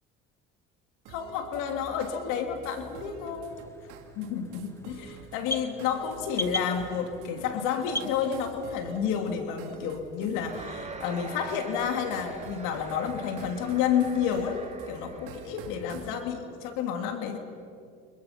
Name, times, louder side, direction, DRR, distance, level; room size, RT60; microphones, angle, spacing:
voice 1, 1.1-3.7 4.2-17.4, left 7 dB, 80° left, 5 dB, 2.6 m, -30 dB
sound 1, 1.1-16.2, right 6 dB, 85° right, 2.6 m, -48 dB
sound 2, 3.4-8.9, equal, 10° left, 1.3 m, -39 dB
sound 3, 10.3-15.7, right 3 dB, 20° right, 2.8 m, -44 dB
29.5 x 28.0 x 5.8 m, 2.4 s
supercardioid pair, 90°, 31 cm